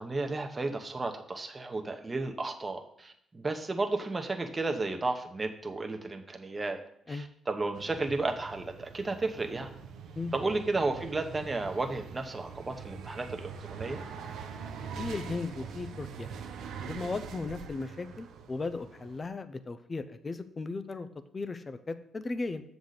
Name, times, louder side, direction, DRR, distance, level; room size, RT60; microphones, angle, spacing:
voice 1, 0.0-6.8 7.1-9.7 10.3-14.0, right 3 dB, 25° right, 4 dB, 0.9 m, -33 dB
sound 1, 7.7-19.2, right 6 dB, 75° right, 0.7 m, -43 dB
voice 2, 15.0-16.3 16.9-21.1 21.3-22.6, left 3 dB, 30° left, 10 dB, 0.6 m, -36 dB
7.1 x 4.1 x 6.5 m, 0.72 s
cardioid pair, 90°, 0 cm